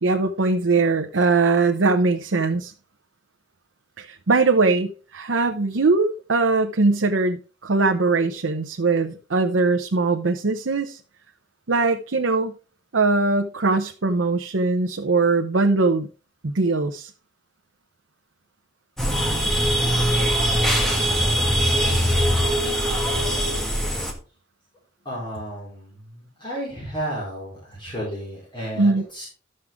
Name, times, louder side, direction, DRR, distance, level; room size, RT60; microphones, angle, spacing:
voice 1, 0.0-2.7 4.0-11.0 11.7-12.5 12.9-16.1 16.4-17.1 28.8-29.0, right 3 dB, 85° right, 0.8 m, -21 dB
sound 1, 19.0-24.1, equal, ahead, 1.8 m, -21 dB
voice 2, 25.0-29.3, equal, 25° left, 4.7 m, -33 dB
13.0 x 6.6 x 3.6 m
head